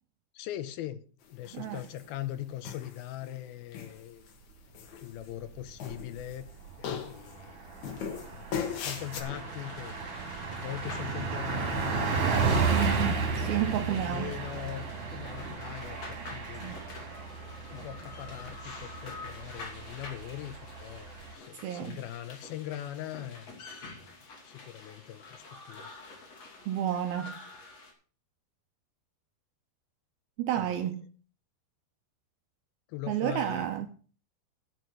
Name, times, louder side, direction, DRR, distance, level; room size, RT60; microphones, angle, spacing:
voice 1, 0.3-1.0 1.3-4.3 5.0-6.5 6.8-8.0 8.3-10.0 10.5-12.9 13.6-16.8 17.7-23.5 24.4-25.9 30.6-30.7 32.9-33.7, left 13 dB, 75° left, 2.3 m, -41 dB
sound 1, 1.4-2.1 2.6-3.3 3.7-4.3 4.7-5.5 5.8-6.5 6.8-7.3 7.8-9.2, left 7 dB, 60° left, 2.2 m, -38 dB
Car passing by, 5.7-6.3 6.7-6.8 7.1-21.3, right 4 dB, 40° right, 2.4 m, -33 dB
sound 2, 9.3-27.9, left 3 dB, 40° left, 3.7 m, -48 dB
voice 2, 12.7-14.4 16.6-16.9 21.5-22.0 26.7-27.4 30.4-31.1 33.1-33.9, right 11 dB, 80° right, 2.2 m, -31 dB
14.0 x 5.9 x 6.4 m
omnidirectional pair, 5.0 m